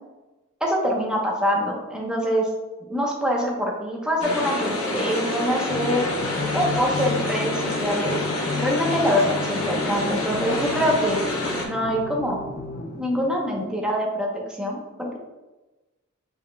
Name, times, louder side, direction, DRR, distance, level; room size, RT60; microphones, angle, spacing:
voice 1, 0.6-2.5 2.8-6.0 6.5-8.2 8.5-11.2 11.6-12.4 13.0-15.2, equal, 5° right, -2 dB, 0.8 m, -24 dB
sound 1, 4.2-11.7, left 2 dB, 75° left, 0.9 m, -27 dB
sound 2, 5.7-13.9, left 4 dB, 45° left, 0.4 m, -34 dB
5.2 x 4.6 x 2.2 m, 1.1 s
head